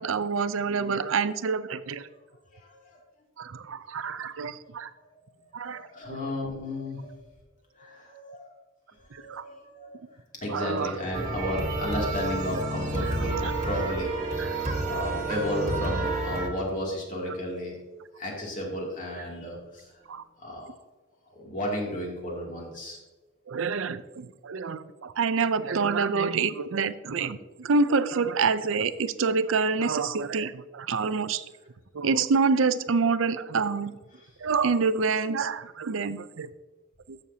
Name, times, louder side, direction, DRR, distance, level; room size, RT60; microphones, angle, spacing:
voice 1, 0.0-2.1 3.4-4.9 5.5-6.2 9.1-9.4 10.5-10.9 13.4-13.5 14.4-14.6 20.1-20.2 23.5-31.4 31.9-33.9 34.4-36.5 37.1-37.2, right 5 dB, 70° right, 14 dB, 0.5 m, -27 dB
voice 2, 0.8-1.1 2.5-3.0 3.9-4.3 5.6-7.2 7.7-8.5 8.9-13.4 13.6-14.1 14.5-17.8 18.2-19.9 20.4-20.7 21.3-23.0, left 1 dB, 40° left, -2 dB, 2.6 m, -34 dB
sound 1, 11.1-16.5, right 2 dB, 35° right, 1.6 m, -30 dB
14.5 x 6.4 x 2.8 m, 1.2 s
head